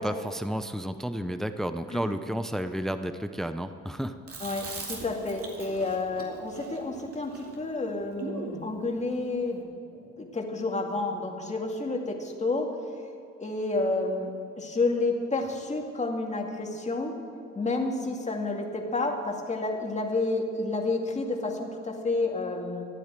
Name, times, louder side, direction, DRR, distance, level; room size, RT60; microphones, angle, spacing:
voice 1, 0.0-4.2, equal, ahead, 10 dB, 0.6 m, -32 dB
Chewing mastication, 4.3-8.7, right 3 dB, 50° right, 2.6 m, -40 dB
voice 2, 4.4-9.7 9.9-12.7 13.4-14.3 14.6-17.1 17.6-22.9, left 3 dB, 25° left, 1 dB, 2.2 m, -30 dB
14.0 x 9.3 x 7.6 m, 2.5 s
cardioid pair, 90°, 30 cm